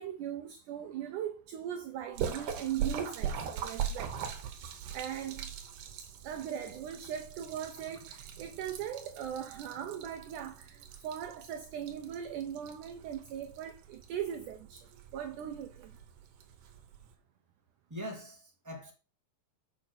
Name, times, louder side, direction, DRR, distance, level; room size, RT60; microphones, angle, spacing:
voice 1, 0.0-4.2 4.9-5.5 6.0-16.0, right 9 dB, 80° right, 1.8 m, -39 dB
Splash splatter, 2.1-17.1, right 8 dB, 65° right, 2.4 m, -41 dB
voice 2, 17.9-18.9, equal, 10° right, 0.8 m, -42 dB
7.0 x 6.3 x 4.5 m
omnidirectional pair, 4.3 m